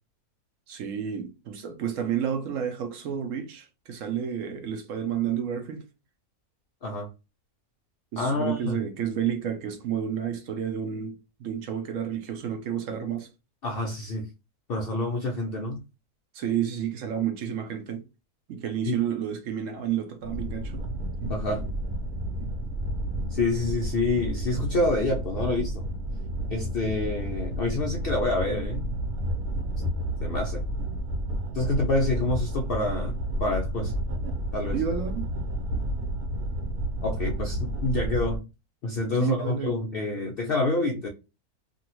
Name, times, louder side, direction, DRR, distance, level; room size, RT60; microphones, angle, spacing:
voice 1, 0.7-5.8 8.1-13.3 16.3-18.0 18.5-20.8 34.7-35.3 39.2-39.8, right 9 dB, 70° right, 0.9 m, -30 dB
voice 2, 8.2-8.8 13.6-14.3 14.7-15.8 18.9-19.0 21.3-21.6 23.3-25.8 26.5-28.9 30.2-30.6 31.5-33.9 34.5-34.8 37.0-38.5 38.8-41.1, left 2 dB, 70° left, 0.5 m, -27 dB
sound 1, 20.2-38.4, right 1 dB, 85° right, 1.2 m, -31 dB
2.8 x 2.6 x 2.8 m
omnidirectional pair, 1.6 m